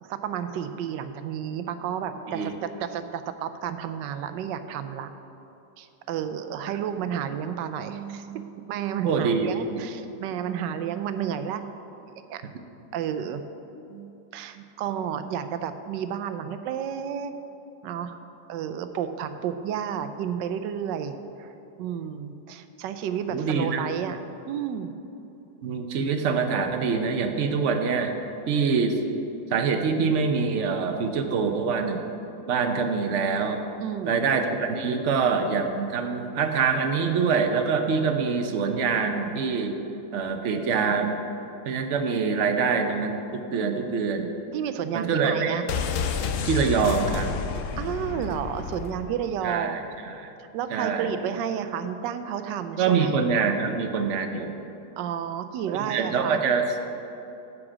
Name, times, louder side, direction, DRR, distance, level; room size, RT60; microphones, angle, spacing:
voice 1, 0.0-5.1 5.8-11.7 12.3-12.4 12.9-13.4 13.9-17.3 17.8-18.2 18.5-21.5 21.8-24.9 33.8-34.3 44.5-45.6 47.8-50.0 50.5-53.1 55.0-56.4, right 8 dB, 90° right, 10 dB, 1.3 m, -31 dB
voice 2, 9.0-9.8 23.3-23.8 25.6-28.1 28.5-29.0 29.5-32.0 32.5-33.6 34.1-39.7 40.1-41.2 41.7-44.3 44.9-45.6 46.4-47.3 49.4-50.3 50.7-51.1 52.8-54.5 55.9-56.6, right 5 dB, 60° right, 6 dB, 0.8 m, -25 dB
sound 1, 45.7-49.5 49.7-49.8, left 6 dB, 70° left, 0.8 m, -30 dB
9.6 x 5.0 x 7.3 m, 2.9 s
omnidirectional pair, 1.9 m